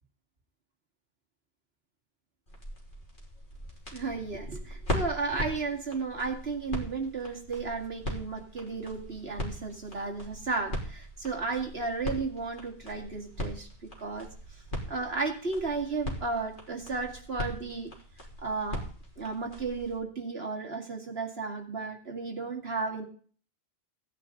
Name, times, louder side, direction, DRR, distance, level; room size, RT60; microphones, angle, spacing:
sound 1, 2.5-20.0, equal, 50° left, 3.8 m, -39 dB
voice 1, 3.9-13.7 14.0-14.3 14.9-17.9 18.4-18.8 19.2-23.0, right 4 dB, 70° right, 1 dB, 2.6 m, -34 dB
16.5 x 9.6 x 3.9 m, 0.43 s
omnidirectional pair, 1.1 m